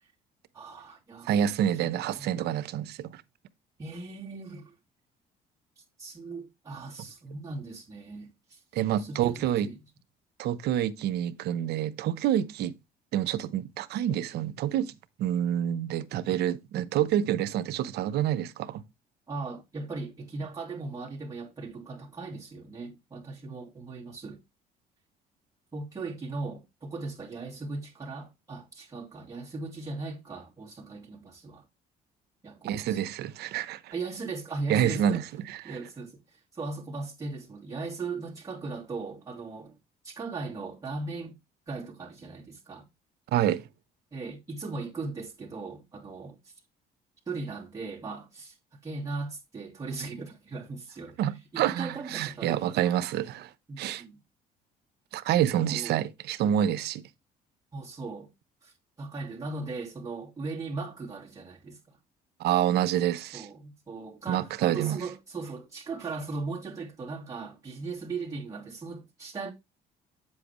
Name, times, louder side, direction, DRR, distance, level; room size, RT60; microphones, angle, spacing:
voice 1, 0.5-1.3 1.8-1.9 2.2-2.3 3.8-4.7 5.8-8.6 8.9-9.8 19.3-24.4 25.7-31.6 32.4-33.0 33.9-35.2 35.6-36.2 36.5-39.8 40.0-41.4 41.7-42.8 44.1-46.5 47.3-48.6 48.8-51.2 51.5-52.9 53.7-54.2 55.6-56.0 57.7-58.3 58.6-62.0 63.3-69.5, right 3 dB, 20° right, 2.9 m, -38 dB
voice 2, 1.3-3.2 8.7-9.7 10.4-12.7 13.1-14.9 15.2-18.8 32.6-33.9 34.7-35.8 43.3-43.6 51.2-53.5 53.8-54.0 55.1-57.0 62.4-63.5 64.3-65.0, right 10 dB, 75° right, 0.9 m, -27 dB
8.7 x 7.7 x 3.1 m
cardioid pair, 110°, 17 cm